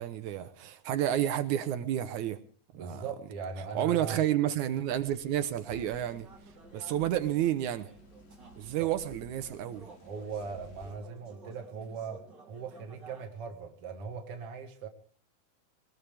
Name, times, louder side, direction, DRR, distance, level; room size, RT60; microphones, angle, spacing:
voice 1, 0.0-2.4 2.7-3.1 3.8-6.3 6.7-7.9 8.6-9.9, right 11 dB, 70° right, 2.0 m, -30 dB
voice 2, 2.7-4.2 8.8-8.9 10.0-14.9, right 5 dB, 50° right, 2.4 m, -40 dB
sound 1, 4.9-10.9, left 1 dB, 70° left, 4.3 m, -54 dB
sound 2, 5.6-13.2, right 2 dB, 30° right, 3.7 m, -54 dB
21.0 x 20.0 x 3.4 m
omnidirectional pair, 4.0 m